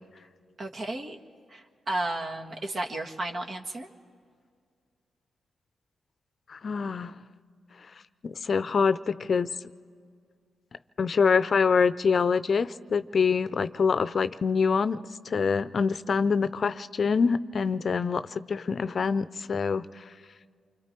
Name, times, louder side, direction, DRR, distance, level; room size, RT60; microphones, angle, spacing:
voice 1, 0.6-1.2 1.5-3.9, right 2 dB, 55° right, 2 dB, 1.7 m, -33 dB
voice 2, 6.5-7.1 8.2-9.5 11.0-15.0 15.3-20.0, left 5 dB, 55° left, 14 dB, 0.5 m, -25 dB
28.0 x 25.0 x 4.5 m, 2.2 s
supercardioid pair, 50°, 0 cm